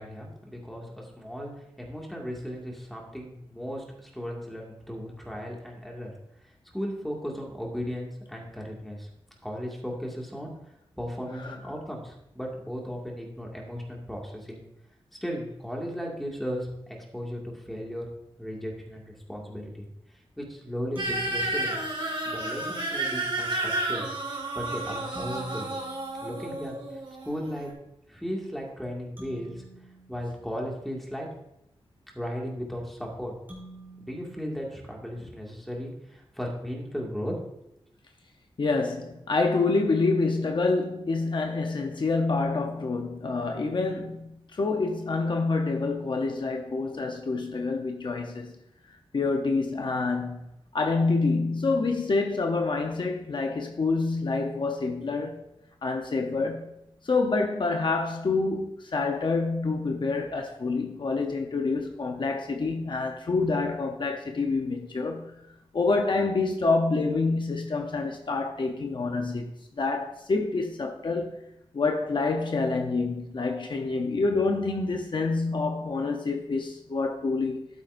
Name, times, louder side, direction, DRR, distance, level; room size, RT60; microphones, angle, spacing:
voice 1, 0.0-1.5 1.8-6.1 6.7-9.1 9.4-10.5 11.0-14.6 15.2-18.1 18.4-19.9 20.4-21.8 22.2-25.7 26.2-26.7 27.2-27.7 28.1-29.6 30.1-31.3 32.1-33.3 34.0-37.3 37.6-37.7, equal, ahead, 2.1 m, -36 dB
voice 2, 11.3-11.7 38.6-48.5 49.1-55.5 55.8-56.7 57.0-65.3 65.7-69.5 69.8-71.4 71.7-77.7, left 3 dB, 55° left, 0.8 m, -27 dB
sound 1, 20.9-22.6 25.1-27.2 29.2-31.3 33.5-35.5, right 1 dB, 20° right, 3.2 m, -50 dB
sound 2, 21.0-27.7, right 2 dB, 60° right, 3.0 m, -31 dB
12.0 x 9.2 x 2.6 m
wide cardioid pair, 120°, 10 cm